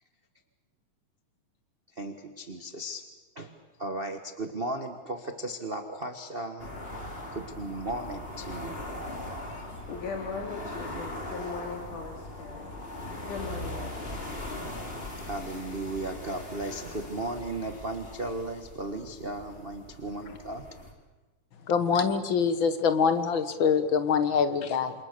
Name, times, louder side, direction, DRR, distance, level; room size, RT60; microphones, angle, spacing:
voice 1, 2.0-3.0 3.3-6.7 7.0-8.8 15.2-20.7, right 2 dB, 30° right, 5 dB, 1.0 m, -36 dB
sound 1, 6.6-20.9, left 1 dB, 20° left, 3.4 m, -40 dB
voice 2, 9.5-12.7 13.3-14.3, left 4 dB, 85° left, 1 dB, 4.2 m, -39 dB
voice 3, 21.7-24.9, left 6 dB, 50° left, 10 dB, 1.7 m, -24 dB
28.5 x 28.0 x 6.8 m, 1.2 s
omnidirectional pair, 3.5 m